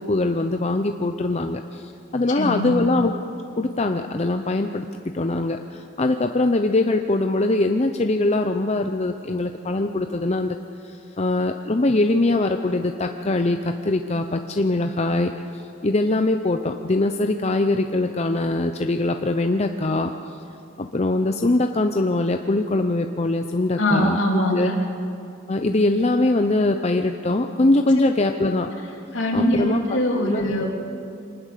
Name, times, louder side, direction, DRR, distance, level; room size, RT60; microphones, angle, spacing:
voice 1, 0.0-3.2 3.6-4.9 5.1-10.6 10.8-15.3 15.8-20.1 20.8-24.2 24.5-24.7 25.5-28.7 29.3-30.4, left 2 dB, 30° left, 5 dB, 0.7 m, -22 dB
voice 2, 2.3-2.8 23.8-24.7 28.0-28.1 28.5-28.6 29.1-30.7, equal, 65° left, 0 dB, 3.3 m, -22 dB
25.0 x 19.5 x 6.7 m, 2.6 s
head